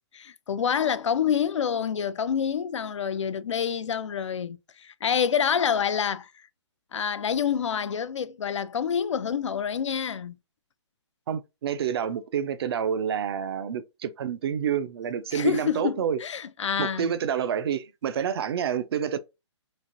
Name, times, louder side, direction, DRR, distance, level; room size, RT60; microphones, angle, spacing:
voice 1, 0.2-6.3 6.9-10.4 15.3-17.1, left 7 dB, 85° left, 0.4 m, -27 dB
voice 2, 11.3-16.2 16.8-19.2, right 8 dB, 55° right, 0.5 m, -28 dB
3.2 x 2.5 x 2.6 m
hypercardioid pair, 145°, 15 cm